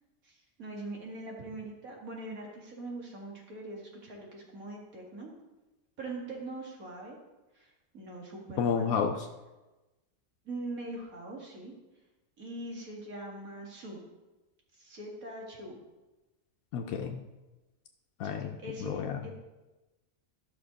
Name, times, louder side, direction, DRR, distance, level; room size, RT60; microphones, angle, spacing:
voice 1, 0.2-5.3 6.0-7.2 7.5-9.0 10.4-11.7 12.4-14.0 14.7-15.8 18.6-19.3, right 2 dB, 80° right, -1 dB, 2.5 m, -42 dB
voice 2, 8.6-9.2 16.7-17.2 18.2-19.3, left 6 dB, 90° left, 3 dB, 1.2 m, -31 dB
12.5 x 5.9 x 5.2 m, 1.1 s
omnidirectional pair, 1.5 m